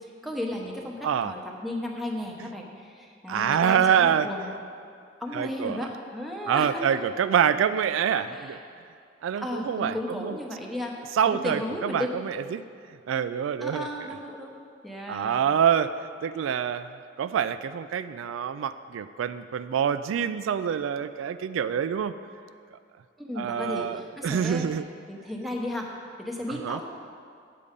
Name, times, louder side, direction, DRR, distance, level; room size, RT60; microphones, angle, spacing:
voice 1, 0.0-4.6 5.2-7.0 8.2-8.6 9.4-11.0 11.2-12.1 13.6-14.5 14.8-15.5 23.2-24.7 25.1-25.9 26.2-26.8, left 1 dB, ahead, -1 dB, 0.8 m, -34 dB
voice 2, 3.3-4.3 5.3-5.9 6.5-8.6 9.2-10.4 11.1-12.6 13.1-13.9 15.1-15.9 16.2-22.1 22.7-22.8 23.4-24.9 26.5-26.8, right 8 dB, 90° right, 12 dB, 0.3 m, -26 dB
8.4 x 6.9 x 5.1 m, 2.3 s
head